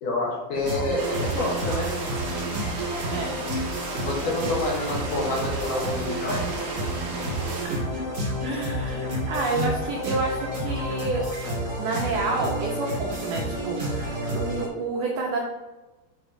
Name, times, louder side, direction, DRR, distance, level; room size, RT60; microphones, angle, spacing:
voice 1, 0.0-1.9 4.1-6.6 9.5-9.7, left 2 dB, 65° left, -2 dB, 2.2 m, -28 dB
sound 1, 0.5-14.7, right 1 dB, 30° right, 2.0 m, -30 dB
sound 2, 1.0-7.7, right 3 dB, 50° right, 2.7 m, -35 dB
voice 2, 8.4-11.2 11.8-14.1 14.4-15.4, right 3 dB, 80° right, -1 dB, 1.9 m, -29 dB
9.2 x 4.2 x 3.7 m, 1.1 s
omnidirectional pair, 5.0 m